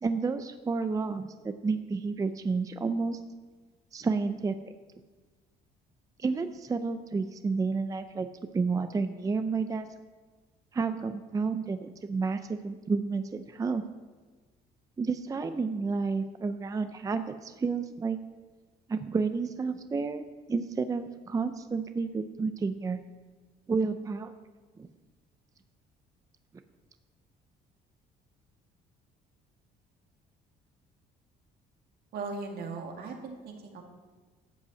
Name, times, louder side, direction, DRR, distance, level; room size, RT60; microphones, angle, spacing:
voice 1, 0.0-3.2 3.9-4.6 6.2-8.3 8.5-9.9 10.7-13.8 15.0-18.2 18.9-23.0 23.7-24.3 24.8-24.9, right 4 dB, 20° right, 9 dB, 0.5 m, -30 dB
voice 2, 32.1-33.8, right 4 dB, 65° right, 2 dB, 2.1 m, -38 dB
12.0 x 5.3 x 8.3 m, 1.4 s
cardioid pair, 110°, 17 cm